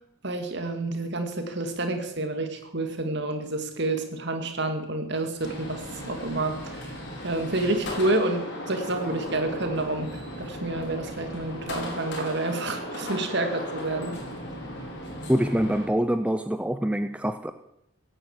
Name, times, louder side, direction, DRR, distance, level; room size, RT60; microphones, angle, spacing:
voice 1, 0.2-6.9 7.2-14.2, right 2 dB, 55° right, 6 dB, 2.4 m, -29 dB
sound 1, 5.4-15.9, left 1 dB, 55° left, 4.2 m, -36 dB
voice 2, 15.3-17.5, equal, 5° right, 9 dB, 0.5 m, -25 dB
16.5 x 9.1 x 8.4 m, 0.80 s
head